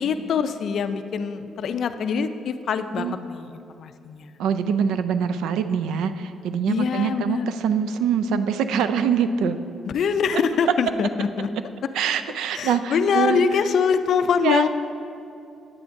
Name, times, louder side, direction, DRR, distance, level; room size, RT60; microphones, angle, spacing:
voice 1, 0.0-4.3 6.7-7.5 9.8-11.5 12.5-14.7, left 6 dB, 65° left, 10 dB, 0.4 m, -24 dB
voice 2, 4.4-9.6 11.9-13.4 14.4-14.6, right 7 dB, 85° right, 11 dB, 0.3 m, -24 dB
9.7 x 8.3 x 2.6 m, 2.6 s
cardioid pair, 90°, 0 cm